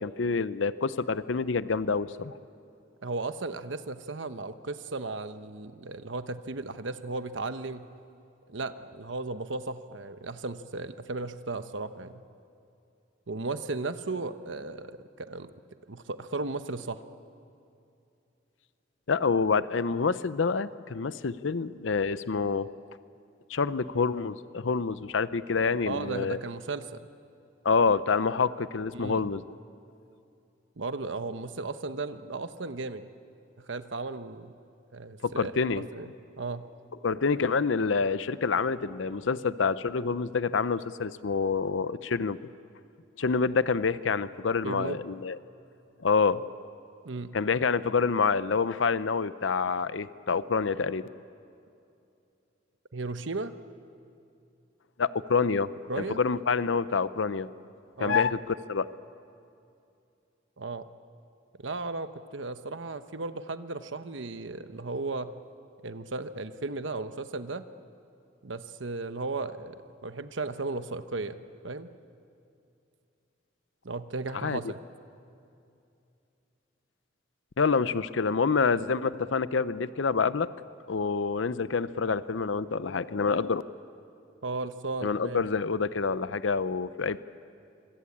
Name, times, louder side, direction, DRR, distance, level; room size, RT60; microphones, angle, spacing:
voice 1, 0.0-2.3 19.1-22.7 23.5-26.4 27.6-29.4 35.2-35.8 37.0-42.4 43.2-45.4 46.0-46.4 47.3-51.1 55.0-55.7 56.0-57.5 58.0-58.4 58.7-58.9 74.4-74.6 77.6-80.5 80.9-83.6 85.0-87.2, left 5 dB, 90° left, 15 dB, 0.7 m, -27 dB
voice 2, 3.0-7.8 8.5-12.2 13.3-15.5 15.9-17.0 25.9-27.1 28.9-29.2 30.8-33.0 33.6-34.5 34.9-36.1 36.4-36.6 44.6-45.0 47.0-47.3 52.9-53.5 55.9-56.2 58.0-58.3 60.6-60.9 61.6-65.3 65.8-67.7 68.4-69.8 70.0-71.9 73.8-74.8 84.4-85.5, right 3 dB, 85° right, 10 dB, 1.0 m, -35 dB
25.5 x 24.5 x 8.6 m, 2.6 s
head